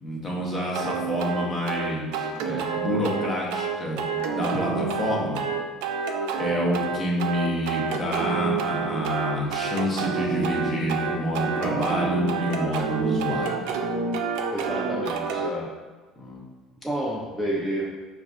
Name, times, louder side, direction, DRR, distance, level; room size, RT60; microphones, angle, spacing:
voice 1, 0.0-5.4 6.4-13.7 16.2-16.4, equal, 20° left, -3 dB, 0.7 m, -28 dB
sound 1, 0.7-15.5, right 5 dB, 85° right, 0.3 m, -28 dB
voice 2, 14.5-15.7 16.8-17.9, right 1 dB, ahead, -5 dB, 0.3 m, -29 dB
5.1 x 2.4 x 2.4 m, 1.3 s
cardioid pair, 150°, 0 cm